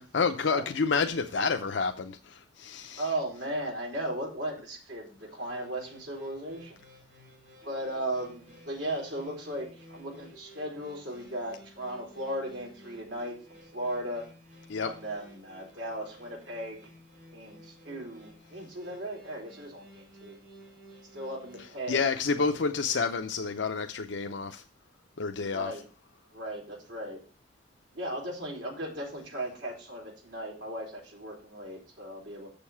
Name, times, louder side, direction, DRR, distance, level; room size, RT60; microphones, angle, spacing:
voice 1, 0.1-3.0 14.7-14.9 21.9-24.6 25.2-25.7, left 4 dB, 75° left, 0.6 m, -29 dB
voice 2, 3.0-6.8 7.6-14.3 14.8-16.9 17.3-20.4 21.1-22.0 22.4-22.5 25.4-25.8 26.3-27.2 27.9-32.5, right 1 dB, 75° right, 4.0 m, -37 dB
sound 1, 5.5-23.2, equal, 50° right, 5.3 m, -54 dB
7.1 x 6.9 x 5.6 m
head